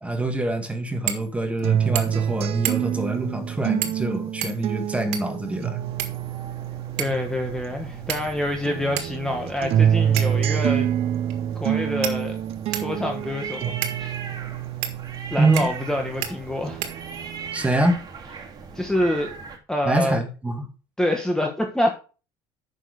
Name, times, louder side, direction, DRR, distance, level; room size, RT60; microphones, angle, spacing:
voice 1, 0.0-5.8 15.4-15.7 17.5-18.0 19.9-20.7, right 2 dB, 10° right, 1.9 m, -25 dB
sound 1, 1.1-1.3 1.6-1.7 1.9-2.3 2.6-3.0 3.8-4.1 4.4-5.4 6.0-6.6 7.0-7.3 8.1-8.5 9.0-9.1 10.2-10.5 11.3-11.4 12.0-13.0 13.8-14.0 14.8-15.0 15.6-15.9 16.2-16.3 16.8-17.4, right 11 dB, 75° right, 1.7 m, -31 dB
sound 2, 1.6-8.3 8.6-16.3 16.7-17.6, right 10 dB, 55° right, 0.8 m, -27 dB
sound 3, 5.8-19.6, right 5 dB, 35° right, 3.2 m, -40 dB
voice 2, 7.0-10.9 11.5-12.4 12.7-14.2 15.3-16.9 18.7-19.3 19.7-20.2 21.0-21.9, left 1 dB, 5° left, 1.5 m, -26 dB
9.0 x 6.5 x 5.0 m
supercardioid pair, 110°, 12 cm